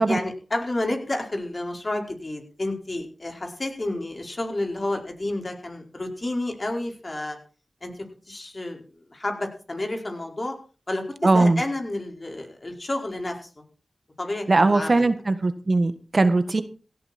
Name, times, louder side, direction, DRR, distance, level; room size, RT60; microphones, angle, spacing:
voice 1, 0.0-7.4 7.8-8.8 9.1-10.5 10.9-13.6 14.2-15.1 16.3-16.4, left 2 dB, 40° left, 3 dB, 4.7 m, -30 dB
voice 2, 11.2-11.6 14.5-16.6, right 2 dB, 50° right, 11 dB, 1.5 m, -20 dB
16.5 x 13.5 x 4.3 m, 0.38 s
cardioid pair, 40°, 0 cm